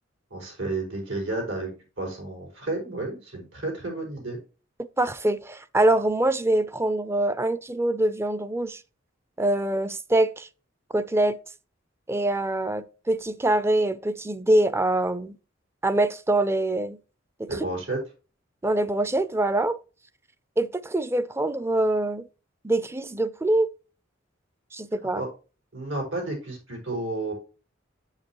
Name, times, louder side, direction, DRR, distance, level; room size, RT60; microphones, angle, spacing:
voice 1, 0.3-4.4 17.5-18.0 25.1-25.3 25.7-27.3, right 2 dB, 90° right, 5.0 m, -31 dB
voice 2, 5.0-8.8 9.4-10.5 10.9-11.4 12.1-15.4 15.8-17.0 17.4-17.5 18.6-19.8 20.6-22.2 22.6-23.7 24.7-25.2, right 1 dB, 15° right, 0.4 m, -24 dB
8.0 x 7.3 x 3.0 m
head